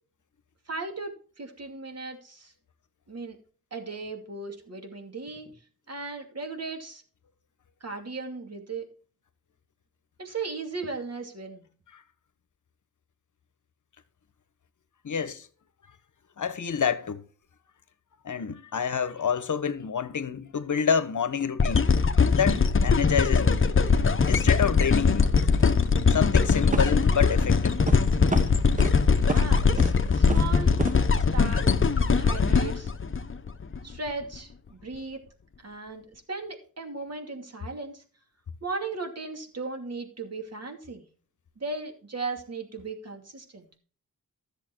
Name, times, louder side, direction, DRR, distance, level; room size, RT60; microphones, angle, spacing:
voice 1, 0.7-2.5 3.1-3.4 3.7-5.5 5.9-7.0 7.8-8.9 10.2-11.7 29.2-30.8 31.2-31.7 32.1-32.9 33.8-35.2 35.6-38.0 38.6-41.0 41.6-43.7, right 3 dB, 45° right, 2.7 m, -37 dB
voice 2, 15.0-15.5 16.4-17.2 18.2-21.9 22.2-23.6 24.2-25.3 26.1-27.7, left 7 dB, 60° left, 1.2 m, -28 dB
sound 1, 21.6-33.8 34.3-34.4, left 5 dB, 35° left, 1.0 m, -21 dB
sound 2, 25.6-25.7 26.7-27.1 27.9-28.0 28.3-28.9 29.3-29.5 29.8-30.0 30.3-30.5 30.8-31.0, right 3 dB, 20° right, 1.0 m, -30 dB
13.5 x 7.1 x 4.6 m
wide cardioid pair, 80°, 34 cm